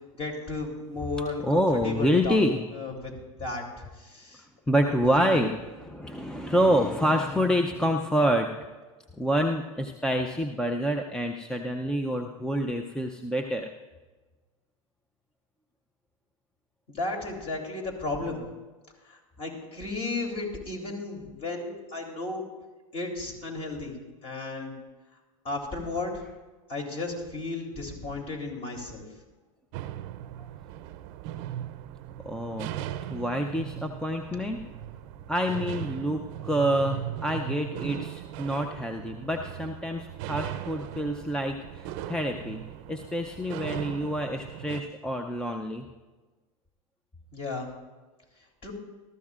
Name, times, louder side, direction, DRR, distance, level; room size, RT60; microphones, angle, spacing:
voice 1, 0.1-2.4 2.7-3.1 3.4-3.6 4.0-4.4 4.8-5.4 16.9-18.4 19.0-22.5 22.9-23.9 24.2-24.7 25.4-26.2 26.7-29.0 47.3-47.7 48.6-48.7, left 3 dB, 35° left, 1 dB, 3.1 m, -34 dB
voice 2, 1.4-2.6 4.7-8.5 9.2-13.7 32.2-32.8 33.1-34.6 35.3-42.6 42.9-45.9, equal, 5° left, 4 dB, 0.6 m, -27 dB
sound 1, 29.7-44.8, right 12 dB, 50° right, 0.6 m, -38 dB
19.5 x 13.5 x 2.5 m, 1.2 s
hypercardioid pair, 110°, 17 cm